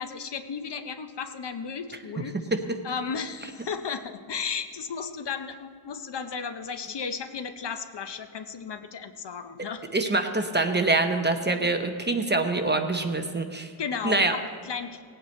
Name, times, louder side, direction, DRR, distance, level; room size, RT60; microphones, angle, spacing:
voice 1, 0.0-2.4 2.8-9.9 11.4-11.7 13.8-15.0, left 6 dB, 55° left, 9 dB, 0.8 m, -34 dB
voice 2, 9.9-13.7 14.0-14.3, right 3 dB, 20° right, 5 dB, 0.7 m, -25 dB
18.5 x 8.9 x 4.3 m, 2.2 s
wide cardioid pair, 145°, 50 cm